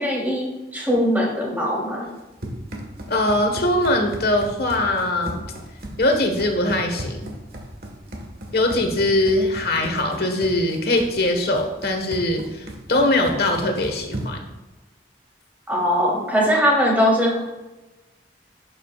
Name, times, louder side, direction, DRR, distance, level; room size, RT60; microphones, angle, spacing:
voice 1, 0.0-2.0 15.7-17.4, equal, 10° right, -3 dB, 3.2 m, -21 dB
Run, 2.1-14.5, right 1 dB, 55° right, 1.6 m, -36 dB
voice 2, 3.1-5.4 6.0-7.3 8.5-14.4, left 1 dB, 60° left, 4 dB, 1.5 m, -21 dB
11.5 x 9.2 x 2.4 m, 1.1 s
head